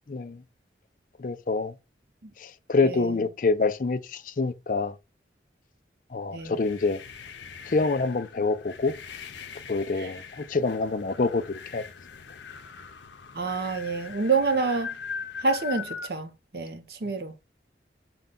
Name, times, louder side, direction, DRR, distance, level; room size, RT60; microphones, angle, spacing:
voice 1, 0.1-0.4 1.2-1.7 2.4-4.9 6.1-7.0 7.7-9.0 9.7-11.8, left 3 dB, 50° left, 0.4 m, -26 dB
sound 1, 6.3-16.1, left 6 dB, 90° left, 0.6 m, -41 dB
voice 2, 13.3-14.9 15.4-17.3, right 4 dB, 60° right, 0.7 m, -27 dB
5.3 x 2.3 x 3.7 m
head